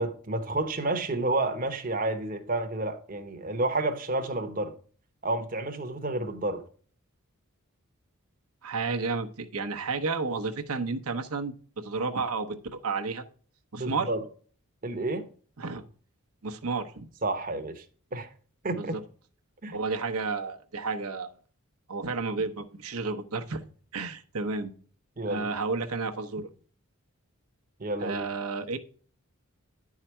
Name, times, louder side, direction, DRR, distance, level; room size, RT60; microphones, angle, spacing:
voice 1, 0.0-4.7 5.2-6.6 13.8-14.2 14.8-15.2 17.2-17.8 18.1-18.3 18.6-18.9 19.6-19.8 25.2-25.5 27.8-28.2, right 2 dB, 40° right, 0.9 m, -30 dB
voice 2, 8.6-13.2 13.7-14.1 15.6-15.8 16.4-17.1 18.7-19.0 19.7-21.3 21.9-23.6 23.9-24.7 25.2-26.5 28.0-28.8, right 4 dB, 80° right, 0.9 m, -31 dB
10.0 x 4.9 x 4.4 m
head